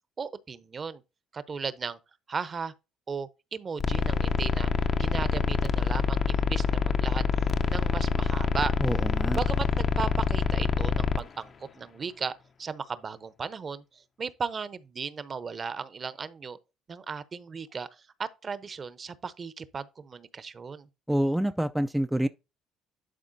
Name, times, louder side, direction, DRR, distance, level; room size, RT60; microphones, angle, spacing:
voice 1, 0.2-1.0 1.3-2.0 2.3-2.7 3.1-4.7 5.0-8.7 9.3-16.6 16.9-20.9, right 5 dB, 35° right, 0.8 m, -36 dB
sound 1, 3.8-11.2, left 5 dB, 40° left, 0.7 m, -26 dB
voice 2, 8.8-9.4 21.1-22.3, right 1 dB, 5° right, 0.4 m, -27 dB
11.5 x 4.3 x 2.7 m
cardioid pair, 95°, 0 cm